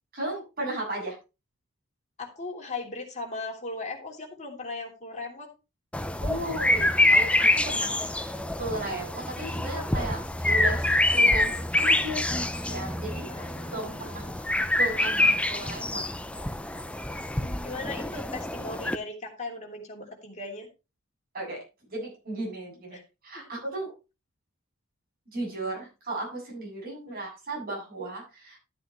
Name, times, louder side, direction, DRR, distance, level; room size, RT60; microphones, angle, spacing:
voice 1, 0.1-1.2 6.2-13.3 13.7-14.2 14.8-16.0 17.4-17.7 21.3-21.6 21.9-23.0 23.2-23.9 25.3-28.6, right 2 dB, 45° right, -1 dB, 7.7 m, -35 dB
voice 2, 2.2-5.5 13.1-14.5 17.6-20.7 22.9-23.0 23.3-23.5 27.1-27.2, left 3 dB, 35° left, 1 dB, 3.1 m, -38 dB
sound 1, 5.9-19.0, left 2 dB, 5° left, 0.6 m, -26 dB
13.0 x 8.4 x 3.1 m, 0.28 s
head